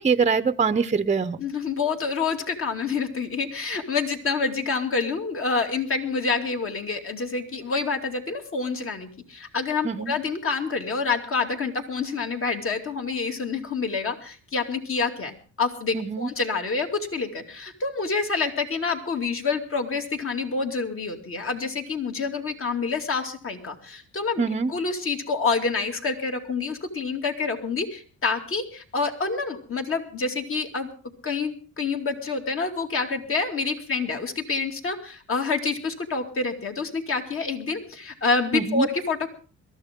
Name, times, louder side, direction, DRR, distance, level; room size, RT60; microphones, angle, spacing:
voice 1, 0.0-1.4 9.8-10.1 15.9-16.3 24.4-24.7 38.5-38.9, right 5 dB, 25° right, 12 dB, 0.8 m, -23 dB
voice 2, 1.4-24.4 24.7-30.9 31.2-39.3, left 4 dB, 45° left, 4 dB, 2.7 m, -27 dB
22.0 x 13.5 x 3.7 m, 0.39 s
cardioid pair, 90°, 30 cm